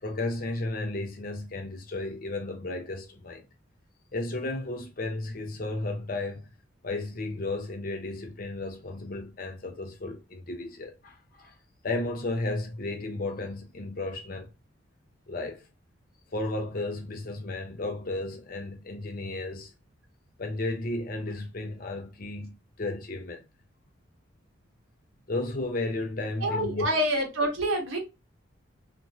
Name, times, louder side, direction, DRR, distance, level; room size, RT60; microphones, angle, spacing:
voice 1, 0.0-3.4 4.1-6.5 6.8-11.5 11.8-14.5 15.3-15.7 16.3-19.7 20.4-23.4 25.3-26.8, left 2 dB, 45° left, 0.6 m, -33 dB
voice 2, 26.4-28.0, right 1 dB, 90° right, 1.2 m, -27 dB
2.9 x 2.1 x 2.6 m
head